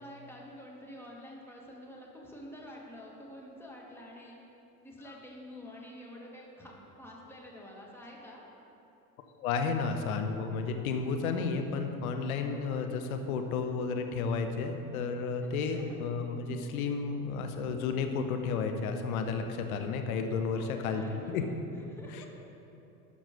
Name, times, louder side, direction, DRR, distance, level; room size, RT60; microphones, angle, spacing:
voice 1, 0.0-4.4 4.8-8.4 15.4-16.0 20.5-22.3, left 1 dB, 5° left, -3 dB, 1.8 m, -48 dB
voice 2, 9.4-21.4, left 5 dB, 65° left, 6 dB, 1.0 m, -32 dB
12.0 x 5.3 x 5.2 m, 2.9 s
figure-of-eight pair, 75°, 47 cm